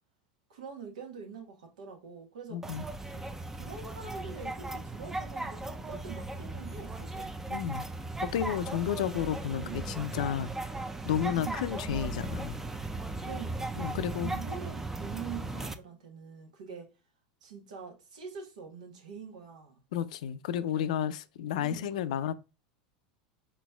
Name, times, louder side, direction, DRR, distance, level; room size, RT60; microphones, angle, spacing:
voice 1, 0.5-2.6 3.0-3.2 3.5-7.3 9.5-9.9 11.3-11.7 13.2-16.9 17.4-19.8 21.6-22.1, right 6 dB, 85° right, 1.2 m, -45 dB
voice 2, 2.5-2.8 7.5-7.8 8.2-10.7 11.1-12.6 13.8-14.3 19.9-22.3, left 9 dB, 80° left, 0.4 m, -32 dB
sound 1, 2.6-15.7, right 2 dB, 10° right, 0.4 m, -37 dB
4.2 x 3.9 x 2.2 m
supercardioid pair, 110°, 4 cm